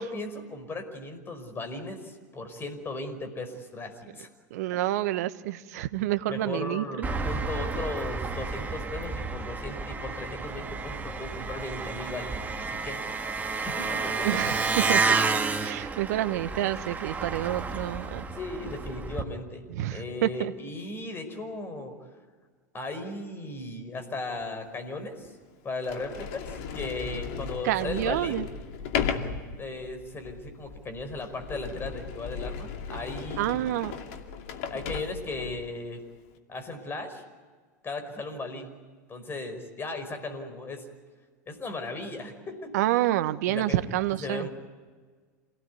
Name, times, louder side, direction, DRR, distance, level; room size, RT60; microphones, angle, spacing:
voice 1, 0.0-4.3 6.3-13.0 13.7-14.0 18.3-21.9 22.7-25.3 25.6-28.4 29.6-33.6 34.7-36.0 36.5-37.2 37.8-38.8 39.1-40.9 41.5-42.7 43.5-44.5, left 2 dB, 25° left, 8 dB, 5.3 m, -37 dB
voice 2, 4.5-7.1 14.2-14.6 14.9-15.0 15.6-18.2 19.7-20.5 27.6-28.4 33.4-34.0 42.7-44.5, right 14 dB, 65° right, 14 dB, 1.2 m, -28 dB
Engine, 7.0-19.2, right 4 dB, 15° right, 2.3 m, -30 dB
Sliding door, 24.4-24.5 25.2-25.3 25.8-35.7, left 7 dB, 60° left, 2.5 m, -36 dB
28.0 x 18.5 x 9.5 m, 1.5 s
hypercardioid pair, 95°, 9 cm